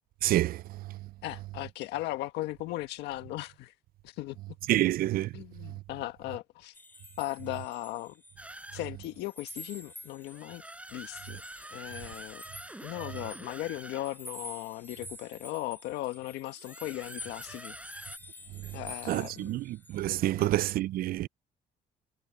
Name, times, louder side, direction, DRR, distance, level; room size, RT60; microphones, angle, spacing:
voice 1, 0.2-0.6 4.7-5.3 19.1-21.3, right 15 dB, 60° right, 0.4 m, -27 dB
voice 2, 1.2-3.7 4.0-4.4 5.3-6.7 7.2-8.2 8.7-10.6 10.9-11.4 11.7-12.4 12.8-17.8 18.7-19.6 20.4-20.5, left 16 dB, 90° left, 1.6 m, -37 dB
sound 1, 6.7-8.6 8.8-20.2, left 1 dB, 10° left, 3.8 m, -48 dB
sound 2, 8.4-8.9 10.3-14.1 16.6-18.2, right 1 dB, 5° right, 5.7 m, -46 dB
cardioid pair, 110°, 17 cm